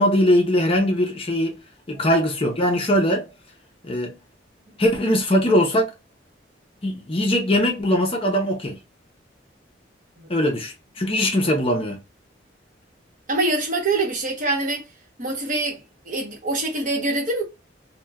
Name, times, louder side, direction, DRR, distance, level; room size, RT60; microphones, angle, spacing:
voice 1, 0.0-1.6 1.9-3.3 3.8-4.2 4.8-5.9 6.8-8.8 10.3-12.0, equal, 30° left, 0.6 m, -21 dB
voice 2, 13.3-14.8 15.2-15.8 16.0-17.4, right 2 dB, 45° right, 1.0 m, -24 dB
2.9 x 2.2 x 2.3 m
head